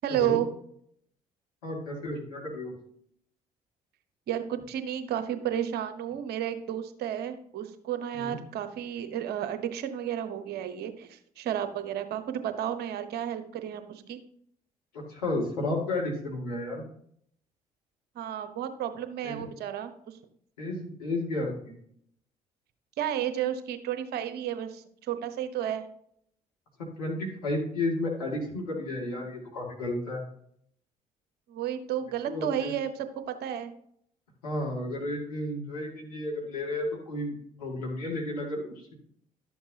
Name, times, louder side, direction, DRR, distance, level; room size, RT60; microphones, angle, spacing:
voice 1, 0.0-0.5 4.3-14.2 18.1-20.2 23.0-25.8 31.5-33.7, right 10 dB, 60° right, 9 dB, 1.0 m, -32 dB
voice 2, 1.6-2.7 8.1-8.4 14.9-16.8 19.2-19.4 20.6-21.7 27.0-30.2 32.3-32.7 34.4-38.6, left 2 dB, 85° left, -3 dB, 2.2 m, -32 dB
12.0 x 7.2 x 2.8 m, 0.67 s
figure-of-eight pair, 50°, 19 cm